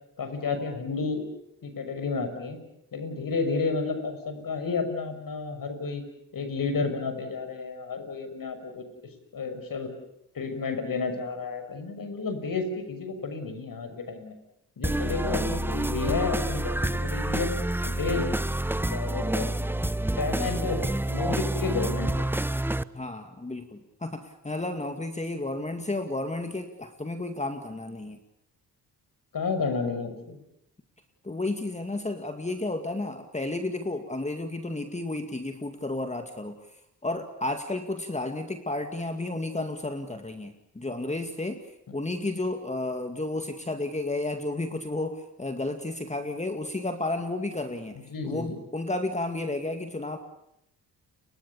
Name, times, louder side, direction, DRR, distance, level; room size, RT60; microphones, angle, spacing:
voice 1, 0.2-1.2 1.6-2.6 2.9-6.0 6.3-8.8 9.3-9.9 10.3-14.3 14.8-17.5 17.8-18.3 18.8-19.5 19.8-19.9 20.2-20.8 21.1-22.3 29.3-30.4 47.9-48.6, left 4 dB, 55° left, 8 dB, 6.1 m, -31 dB
sound 1, 14.8-22.8, right 1 dB, 5° right, 0.9 m, -28 dB
voice 2, 22.9-28.2 31.2-41.6 41.9-48.0 48.2-50.2, left 2 dB, 15° left, 6 dB, 2.2 m, -32 dB
30.0 x 23.5 x 7.1 m, 0.80 s
supercardioid pair, 60°, 39 cm